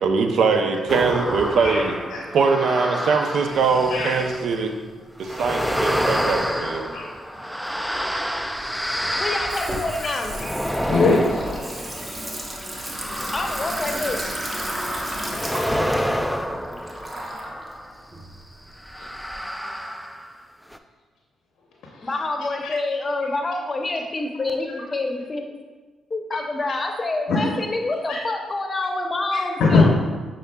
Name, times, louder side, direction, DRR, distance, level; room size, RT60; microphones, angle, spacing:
voice 1, 0.0-2.0 2.3-4.7 5.2-6.8, right 4 dB, 70° right, 4 dB, 0.4 m, -21 dB
sound 1, 0.9-4.6 5.2-18.0 18.8-20.4 20.7-20.8, equal, ahead, 0.3 m, -28 dB
Water tap faucet / Sink (filling or washing), 7.6-19.3, right 1 dB, 25° right, 0.9 m, -34 dB
voice 2, 9.1-10.4 13.3-14.2 22.0-25.5 26.1-29.9, left 2 dB, 35° left, 3 dB, 0.7 m, -27 dB
voice 3, 10.9-11.4 19.0-19.1 22.0-22.1 22.6-22.8 27.3-27.4 28.1-28.2 29.3-29.9, left 3 dB, 75° left, -1 dB, 0.6 m, -20 dB
6.4 x 3.6 x 2.2 m, 1.4 s
supercardioid pair, 50°, 0 cm